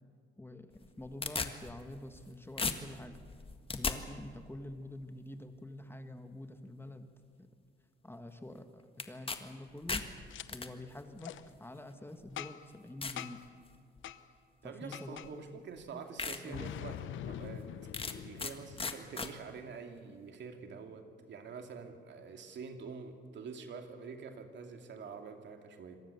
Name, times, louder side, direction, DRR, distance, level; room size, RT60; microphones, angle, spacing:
sound 1, 0.7-2.3 2.6-4.0 9.0-9.4 9.7-10.7 11.6-11.7 12.3-12.4 13.0-13.2 13.7-14.1 15.2-15.3 15.8-15.9 16.2-16.4 16.8-16.9 17.9-18.5 18.8-19.3, left 4 dB, 30° left, 1.6 m, -36 dB
voice 1, 1.0-3.2 3.7-7.1 7.4-7.5 8.0-10.0 10.5-13.4 14.6-15.6 16.4-16.7, left 1 dB, 10° left, 8 dB, 1.5 m, -47 dB
Boom, 10.3-10.5 11.2-11.4 12.4-12.8 13.2-13.5 14.0-14.2 14.9-15.3 16.5-19.2, left 11 dB, 75° left, 0.9 m, -44 dB
voice 2, 14.6-17.7 18.1-26.0, right 5 dB, 65° right, 5 dB, 2.6 m, -46 dB
26.0 x 18.5 x 7.0 m, 2.2 s
cardioid pair, 90°, 20 cm